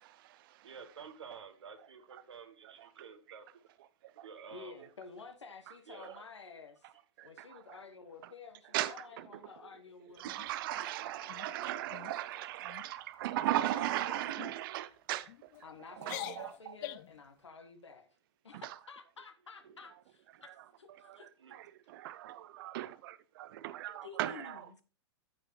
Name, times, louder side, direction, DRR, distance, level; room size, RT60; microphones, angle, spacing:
voice 1, 0.0-0.8 2.1-2.2 2.6-3.4 3.8-4.5 4.8-4.9 5.7-5.8 6.0-6.2 6.8-6.9 7.2-7.8 8.2-8.3 8.7-9.7 10.2-15.3 15.6-15.7 16.0-16.8 18.5-18.8 20.3-24.8, right 14 dB, 50° right, 0.5 m, -39 dB
voice 2, 0.6-3.5 4.2-4.9 5.9-6.1 19.6-19.8 21.4-21.5, right 6 dB, 75° right, 1.5 m, -50 dB
voice 3, 4.5-6.8 7.2-11.9 13.5-14.2 15.6-18.1 18.4-21.3 24.0-24.6, left 4 dB, 85° left, 1.2 m, -51 dB
sound 1, 10.2-10.9 11.3-11.5 11.9-12.2 12.6-12.9 13.5-13.9 14.4-14.6 15.3-15.6 16.0-17.2, left 17 dB, 40° left, 0.5 m, -45 dB
14.5 x 4.8 x 3.2 m
hypercardioid pair, 110°, 15 cm